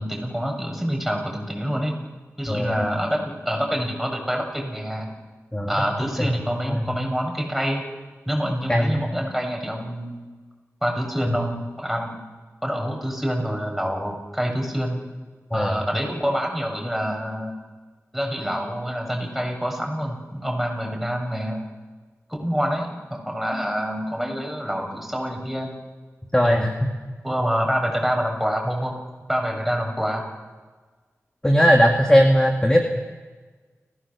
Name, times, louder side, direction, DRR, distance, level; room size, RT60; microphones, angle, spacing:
voice 1, 0.0-1.9 2.4-5.1 5.7-7.8 8.2-10.2 10.8-12.2 12.6-15.0 15.5-17.5 18.1-21.6 22.3-25.7 26.4-26.7 27.2-28.9 29.3-30.2, equal, ahead, 1 dB, 6.7 m, -26 dB
voice 2, 2.5-2.8 5.5-5.7 6.2-6.3 6.6-6.9 8.7-9.0 11.3-11.4 15.5-15.8 26.3-26.9 31.4-32.9, equal, 15° left, 1 dB, 2.4 m, -19 dB
30.0 x 16.0 x 7.1 m, 1.4 s
cardioid pair, 45°, 5 cm